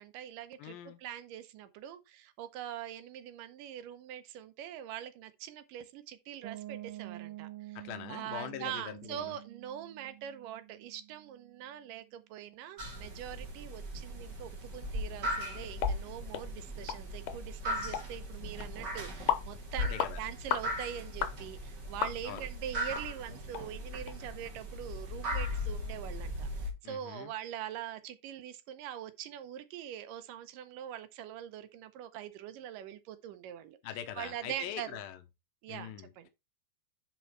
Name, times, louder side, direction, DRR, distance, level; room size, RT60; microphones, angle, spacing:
voice 1, 0.0-7.8 8.1-33.8 34.2-35.0 35.6-36.3, right 10 dB, 80° right, 2.3 m, -43 dB
voice 2, 0.6-1.0 7.8-9.3 19.9-20.2 22.2-22.5 26.8-27.3 33.8-35.2 35.7-36.3, left 10 dB, 90° left, 2.7 m, -43 dB
Piano, 6.4-12.1, right 17 dB, 60° right, 2.1 m, -48 dB
sound 1, 12.8-26.7, left 1 dB, 35° right, 2.3 m, -38 dB
sound 2, 15.8-16.0 16.3-16.5 16.9-17.0 17.3-17.4 17.9-18.1 18.6-18.7 19.3-19.5 20.0-20.1 20.5-20.7 21.2-21.4 22.0-22.5 22.9-23.0 23.5-23.6 24.1-24.2, left 10 dB, 70° left, 2.3 m, -32 dB
9.9 x 4.3 x 4.5 m
omnidirectional pair, 4.0 m